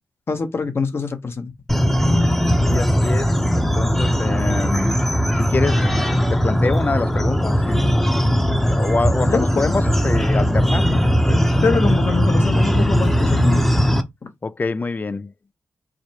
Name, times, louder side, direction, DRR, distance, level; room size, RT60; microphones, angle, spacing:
voice 1, 0.3-1.5 9.2-9.7 11.6-13.6, left 4 dB, 50° left, 1.0 m, -24 dB
sound 1, 1.7-14.0, equal, 5° left, 0.8 m, -18 dB
voice 2, 2.6-5.0 5.3-5.9 6.3-11.4 11.9-12.0 14.4-15.3, left 3 dB, 35° left, 0.4 m, -26 dB
4.8 x 2.1 x 2.9 m
cardioid pair, 50°, 5 cm